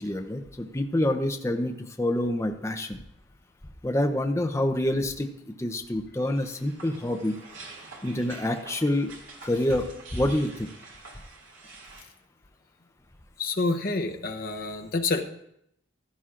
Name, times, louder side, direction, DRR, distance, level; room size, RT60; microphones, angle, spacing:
voice 1, 0.0-1.7 2.0-3.0 3.8-7.4 8.0-9.1 9.4-10.7, left 1 dB, 15° left, 4 dB, 0.6 m, -27 dB
sound 1, 6.2-12.0, right 3 dB, 80° right, 2.5 m, -47 dB
voice 2, 13.4-15.2, left 3 dB, 50° left, 4 dB, 0.8 m, -28 dB
15.5 x 12.0 x 2.5 m, 0.76 s
head